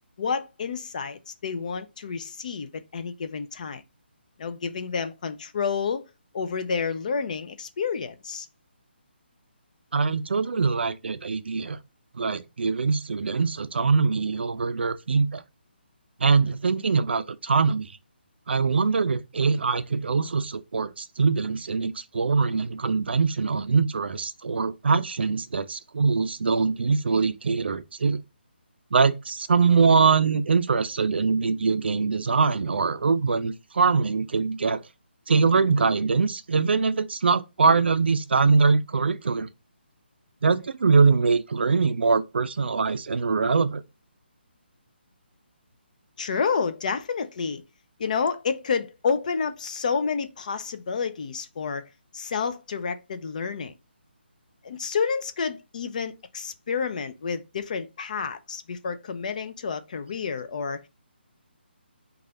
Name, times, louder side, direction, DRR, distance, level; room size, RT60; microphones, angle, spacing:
voice 1, 0.2-3.8 4.4-6.0 6.3-8.5 46.2-47.6 48.0-51.9 52.1-53.7 54.6-60.9, left 5 dB, 45° left, 0.4 m, -29 dB
voice 2, 9.9-11.8 12.1-15.4 16.2-17.9 18.5-28.2 28.9-34.8 35.3-39.5 40.4-43.8, right 4 dB, 70° right, 0.4 m, -23 dB
3.2 x 2.3 x 3.6 m
hypercardioid pair, 160°, 6 cm